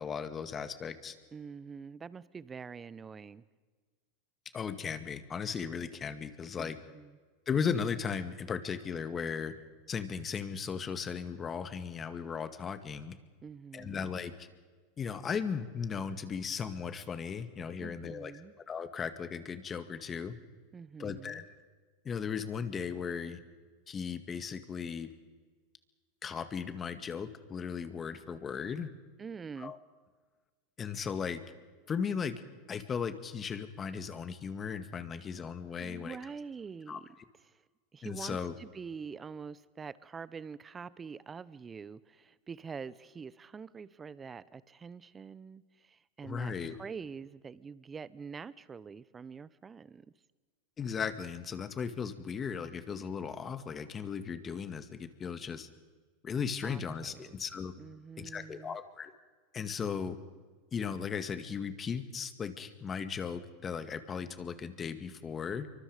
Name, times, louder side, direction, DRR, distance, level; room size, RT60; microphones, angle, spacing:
voice 1, 0.0-1.1 4.5-6.8 7.5-9.5 9.9-13.2 13.7-14.5 15.0-18.3 18.7-20.3 21.0-21.4 22.0-23.4 23.9-25.1 26.2-28.9 29.6-29.8 30.8-31.4 31.9-32.4 32.7-36.2 36.9-37.0 38.0-38.5 46.2-46.8 50.8-55.7 56.2-57.7 58.2-59.1 59.5-60.2 60.7-65.7, left 6 dB, 25° left, 10 dB, 2.0 m, -36 dB
voice 2, 1.3-3.4 6.6-7.2 13.4-14.1 17.8-18.5 20.7-21.4 29.2-29.7 35.2-35.3 35.8-37.1 37.5-37.6 37.9-46.5 46.8-50.1 56.6-57.4 57.8-58.8, right 5 dB, 20° right, 18 dB, 1.0 m, -45 dB
27.0 x 24.5 x 5.2 m, 1.4 s
hypercardioid pair, 105°, 0 cm